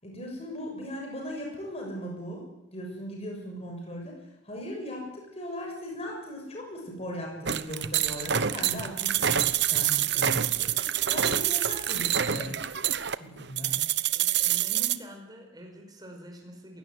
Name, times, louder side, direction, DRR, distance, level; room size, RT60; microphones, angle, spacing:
voice 1, 0.0-2.4 2.7-4.2 4.4-9.4 9.7-10.7 11.0-12.5 13.2-13.7 14.5-14.6, equal, 30° left, 0 dB, 6.8 m, -38 dB
sound 1, 7.5-15.0, right 10 dB, 60° right, 0.9 m, -27 dB
voice 2, 14.1-16.8, equal, 20° right, 2 dB, 5.2 m, -46 dB
21.5 x 17.0 x 9.4 m, 0.89 s
head